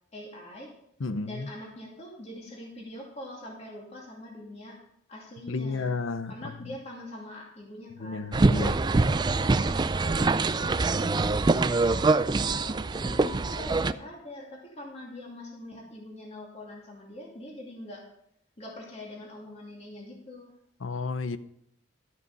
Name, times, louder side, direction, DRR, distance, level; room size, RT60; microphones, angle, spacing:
voice 1, 0.1-0.7 1.2-4.8 5.1-6.0 6.2-8.3 8.9-18.0 18.6-20.5, left 1 dB, 35° left, 2.6 m, -43 dB
voice 2, 1.0-1.3 5.5-6.3 8.0-8.8 20.8-21.4, left 4 dB, 85° left, 0.7 m, -31 dB
sound 1, 8.3-13.9, right 3 dB, 20° right, 0.3 m, -24 dB
12.5 x 8.3 x 5.4 m
head